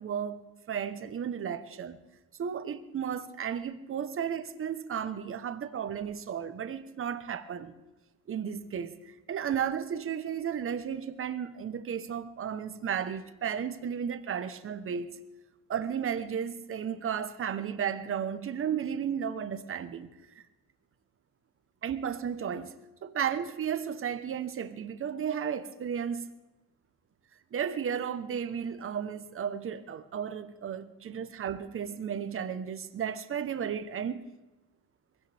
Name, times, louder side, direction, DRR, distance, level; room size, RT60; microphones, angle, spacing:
voice 1, 0.0-2.0 2.4-7.7 8.3-15.1 15.7-20.1 21.8-26.3 27.5-34.2, right 8 dB, 30° right, 1.1 m, -34 dB
23.0 x 16.0 x 3.5 m
cardioid pair, 145°, 40 cm